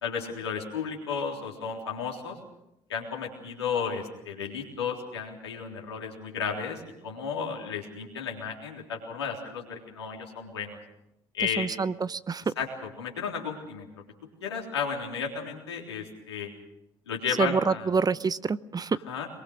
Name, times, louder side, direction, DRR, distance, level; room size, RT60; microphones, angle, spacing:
voice 1, 0.0-2.4 2.9-10.8 11.3-11.7 12.6-14.0 14.4-16.5 17.1-17.9 19.1-19.3, left 6 dB, 85° left, 0 dB, 3.6 m, -33 dB
voice 2, 11.6-12.5 17.4-19.0, right 5 dB, 30° right, 16 dB, 0.8 m, -27 dB
23.0 x 22.5 x 6.4 m, 0.85 s
figure-of-eight pair, 50°, 14 cm